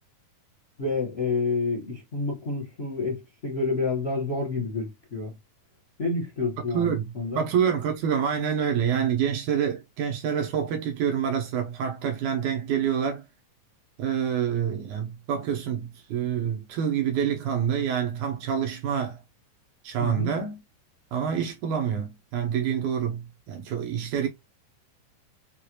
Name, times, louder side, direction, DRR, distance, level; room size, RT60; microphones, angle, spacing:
voice 1, 0.8-5.3 6.0-7.5 20.0-20.3, left 3 dB, 60° left, 0.6 m, -29 dB
voice 2, 6.7-13.2 14.0-19.2 19.8-20.6 21.1-24.3, right 8 dB, 75° right, 2.1 m, -27 dB
6.3 x 2.5 x 3.0 m
omnidirectional pair, 3.8 m